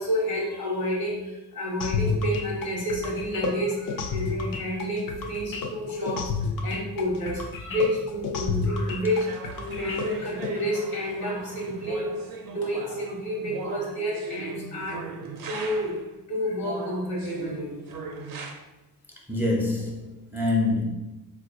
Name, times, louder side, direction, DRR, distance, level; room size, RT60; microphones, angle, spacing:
voice 1, 0.0-6.3 6.6-12.1 12.5-15.1 15.4-16.0 16.3-17.8, equal, 85° left, -1 dB, 1.0 m, -29 dB
sound 1, 1.8-10.5, left 5 dB, 65° left, 0.5 m, -30 dB
sound 2, 9.1-16.1 16.6-18.5, right 4 dB, 70° right, 0.5 m, -40 dB
voice 2, 19.3-20.8, left 2 dB, 5° right, -1 dB, 0.4 m, -25 dB
3.9 x 2.3 x 2.6 m, 1.1 s
cardioid pair, 120°, 36 cm